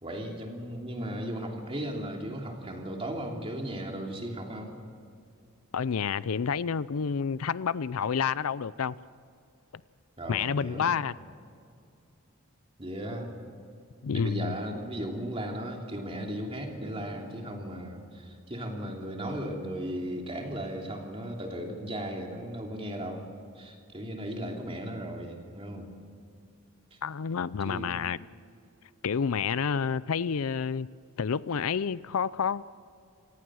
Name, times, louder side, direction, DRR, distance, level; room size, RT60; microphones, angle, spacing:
voice 1, 0.0-4.7 10.2-10.9 12.8-13.3 14.1-23.2 23.5-25.9 26.9-27.0 27.6-27.9, right 1 dB, 25° right, 3.1 m, -36 dB
voice 2, 5.7-8.9 10.3-11.1 14.0-14.5 27.0-28.2 29.0-30.9 31.2-32.7, left 6 dB, 75° left, 0.5 m, -29 dB
27.5 x 18.0 x 6.4 m
head